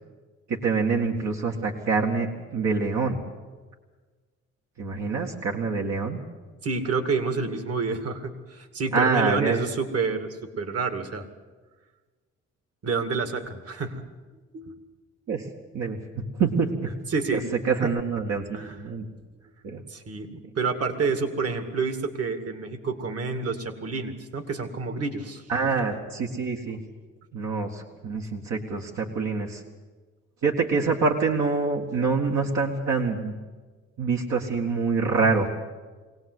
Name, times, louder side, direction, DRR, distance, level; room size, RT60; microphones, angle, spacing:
voice 1, 0.5-3.2 4.8-6.2 8.9-9.6 15.3-15.5 15.7-16.9 17.3-19.0 19.6-19.8 25.5-26.8 27.3-29.6 30.4-33.4 34.0-35.5, right 4 dB, 65° right, 0 dB, 2.1 m, -26 dB
voice 2, 6.6-11.3 12.8-14.0 14.5-14.8 17.1-17.5 17.8-17.9 18.4-18.8 19.9-25.5, right 4 dB, 50° right, 8 dB, 2.3 m, -29 dB
23.0 x 18.0 x 8.1 m, 1.3 s
cardioid pair, 90°, 30 cm